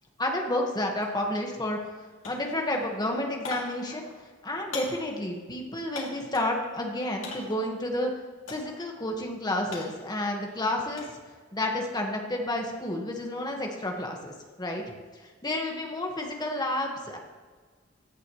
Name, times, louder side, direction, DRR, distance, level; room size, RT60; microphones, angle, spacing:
voice 1, 0.2-1.8 2.2-4.1 4.4-8.1 8.5-11.0 11.5-14.8 15.4-17.2, left 1 dB, 20° left, 1 dB, 1.6 m, -30 dB
sound 1, 1.0-1.1 1.5-2.0 2.2-6.6 7.2-7.7 8.5-8.9 9.2-11.2 11.6-12.0, left 3 dB, 75° left, 2.6 m, -42 dB
16.0 x 10.5 x 3.2 m, 1.5 s
head